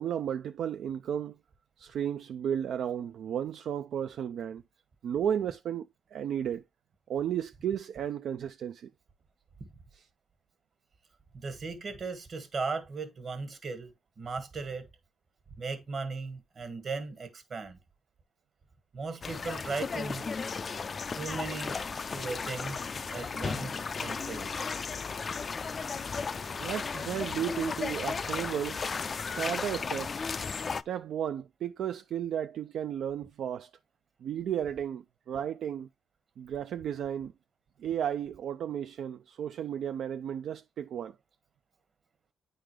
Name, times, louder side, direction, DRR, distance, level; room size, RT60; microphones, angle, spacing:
voice 1, 0.0-1.4 1.8-4.6 5.0-6.6 7.1-8.9 9.9-10.1 26.6-30.3 30.6-33.7 34.2-35.9 36.4-37.3 37.8-41.2, right 9 dB, 70° right, 0.3 m, -34 dB
voice 2, 11.3-14.9 15.6-17.8 18.9-20.3 21.2-24.5, right 4 dB, 45° right, 1.4 m, -37 dB
sound 1, 19.2-30.8, left 5 dB, 40° left, 0.3 m, -35 dB
9.1 x 3.8 x 3.2 m
cardioid pair, 90°, 0 cm